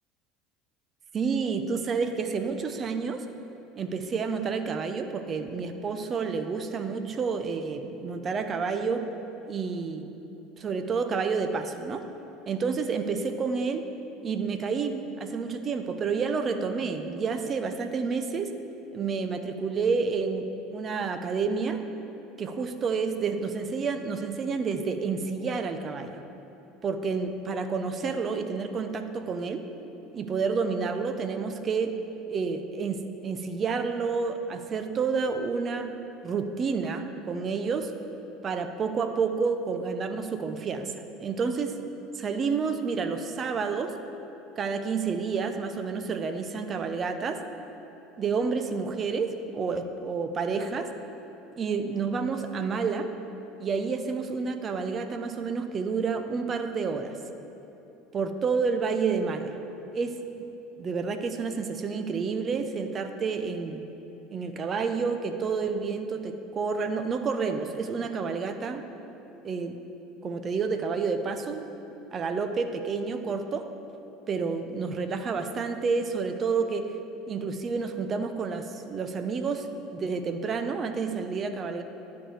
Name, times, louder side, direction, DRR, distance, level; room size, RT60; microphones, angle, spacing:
voice 1, 1.1-3.2 3.8-9.0 9.5-10.1 10.6-12.0 12.5-13.8 14.2-18.5 18.9-21.8 22.4-26.2 26.8-29.6 30.1-31.9 32.3-35.9 36.2-37.9 38.4-40.9 41.2-41.7 42.1-43.9 44.6-47.4 48.2-50.9 51.6-53.1 53.6-57.2 58.1-59.6 59.9-60.5 60.8-63.8 64.3-68.8 69.4-69.8 70.2-71.7 72.1-73.7 74.3-76.9 77.3-79.7 79.9-81.8, right 5 dB, 35° right, 7 dB, 0.8 m, -29 dB
10.5 x 4.8 x 7.9 m, 3.0 s
hypercardioid pair, 80°, 0 cm